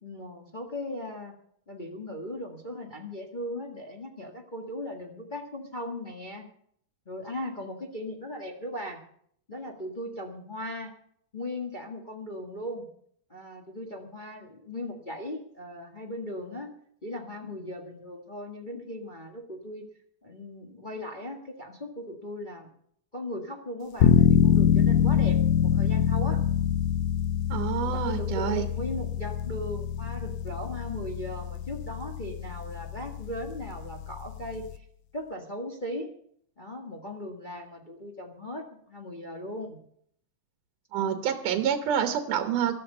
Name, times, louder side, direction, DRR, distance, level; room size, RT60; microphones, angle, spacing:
voice 1, 0.0-1.3 1.7-6.4 7.0-9.0 9.5-10.9 11.3-12.9 13.3-16.7 17.0-19.8 20.2-22.7 23.1-26.4 27.8-34.8 35.1-36.1 36.6-39.8, left 1 dB, 25° left, 1 dB, 1.2 m, -38 dB
sound 1, 24.0-34.8, left 10 dB, 75° left, 1.9 m, -25 dB
voice 2, 27.5-28.7 40.9-42.8, right 9 dB, 80° right, 7 dB, 2.6 m, -27 dB
13.5 x 13.0 x 5.5 m, 0.64 s
omnidirectional pair, 3.6 m